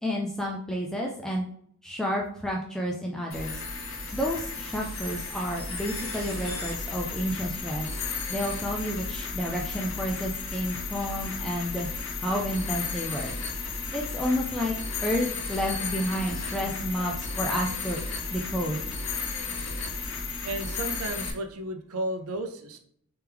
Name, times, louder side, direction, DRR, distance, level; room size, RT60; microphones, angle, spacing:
voice 1, 0.0-1.5 1.8-3.6 4.1-8.0 8.3-11.9 12.2-13.4 13.9-14.7 15.0-18.0 18.3-18.8, equal, ahead, -1 dB, 0.3 m, -30 dB
sound 1, 3.3-21.3, left 4 dB, 75° left, 0.9 m, -34 dB
voice 2, 20.4-22.8, right 1 dB, 80° right, 6 dB, 0.6 m, -33 dB
3.4 x 3.0 x 3.4 m, 0.63 s
head